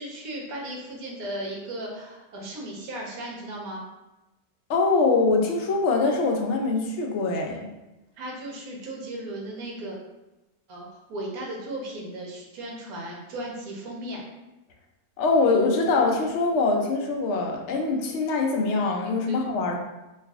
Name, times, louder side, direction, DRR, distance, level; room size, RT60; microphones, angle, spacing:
voice 1, 0.0-3.8 8.2-10.0 10.7-14.2 19.3-19.4, right 1 dB, 70° right, -1 dB, 1.2 m, -36 dB
voice 2, 4.7-7.7 15.2-19.8, left 3 dB, 65° left, 1 dB, 0.7 m, -23 dB
3.2 x 2.4 x 3.5 m, 1.0 s
omnidirectional pair, 1.7 m